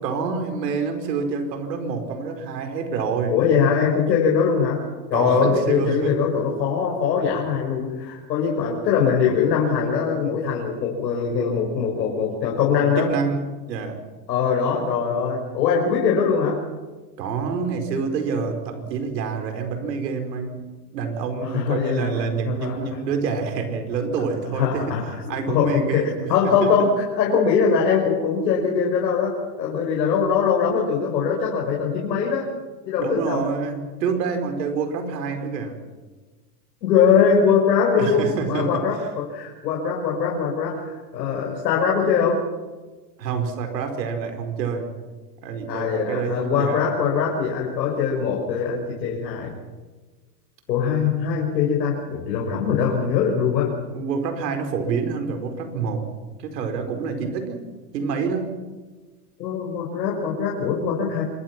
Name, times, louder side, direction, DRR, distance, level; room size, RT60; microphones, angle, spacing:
voice 1, 0.0-3.4 5.1-6.2 12.8-14.0 17.2-20.6 20.9-24.9 25.3-26.9 33.0-35.8 37.9-38.8 43.2-44.9 45.4-46.8 53.9-56.0 56.4-57.6 57.9-58.6, right 5 dB, 75° right, 6 dB, 5.1 m, -27 dB
voice 2, 3.3-4.8 5.1-13.1 14.3-16.6 21.4-22.1 22.5-22.8 24.5-25.0 25.5-29.3 29.6-32.5 32.9-33.4 36.8-42.4 45.7-49.5 50.7-53.8 59.4-61.2, left 6 dB, 80° left, -1 dB, 5.8 m, -22 dB
26.5 x 23.0 x 6.1 m, 1.3 s
supercardioid pair, 165°, 50 cm